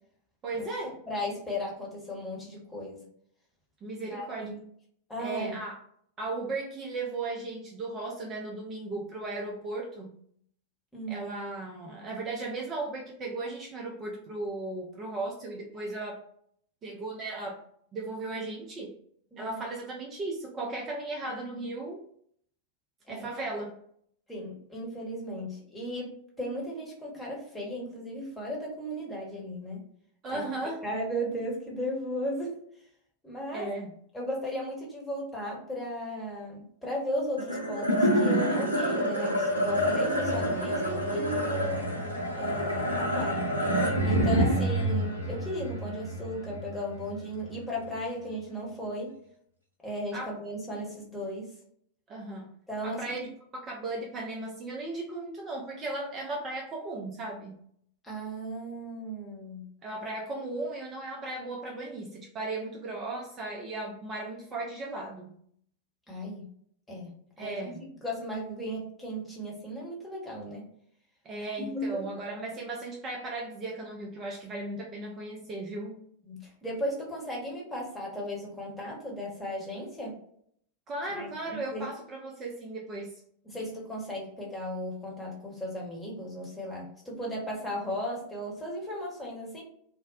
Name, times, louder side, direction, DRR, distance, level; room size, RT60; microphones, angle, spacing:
voice 1, 0.4-0.9 3.8-4.6 5.2-5.8 6.2-10.2 11.1-16.2 16.8-17.6 17.9-18.9 19.4-22.0 23.1-23.7 30.2-30.8 33.5-33.9 44.5-44.7 50.1-50.3 52.1-52.5 52.8-57.6 59.8-65.4 67.4-67.8 71.2-76.0 80.9-83.1, right 2 dB, 25° right, -1 dB, 0.4 m, -36 dB
voice 2, 1.1-3.0 4.1-4.6 5.1-5.5 10.9-11.2 19.3-19.6 23.1-23.3 24.3-29.8 30.3-30.4 30.8-32.6 33.2-33.7 34.1-41.9 42.3-43.5 44.0-49.1 49.8-51.5 52.7-53.3 58.0-59.6 66.1-66.5 66.9-67.1 67.4-67.6 68.0-70.6 71.7-72.0 76.2-80.2 81.1-81.9 83.5-89.6, equal, 10° left, -3 dB, 1.0 m, -36 dB
sound 1, 37.4-47.9, equal, 85° right, 0.6 m, -28 dB
2.5 x 2.0 x 2.3 m, 0.65 s
figure-of-eight pair, 90°, 0 cm